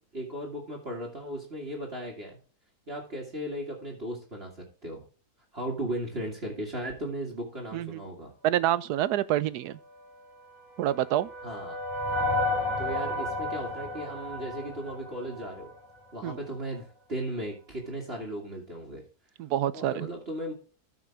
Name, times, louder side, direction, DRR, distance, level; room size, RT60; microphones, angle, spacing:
voice 1, 0.1-2.4 2.9-5.0 5.5-8.3 11.4-11.8 12.8-15.7 16.1-19.0 19.7-20.5, right 1 dB, 40° right, 2.5 m, -36 dB
voice 2, 8.4-9.7 10.8-11.3 16.2-16.4 19.4-20.1, right 12 dB, 80° right, 1.2 m, -27 dB
sound 1, 10.4-15.8, left 2 dB, 25° left, 4.5 m, -32 dB
13.5 x 6.2 x 3.5 m
omnidirectional pair, 1.7 m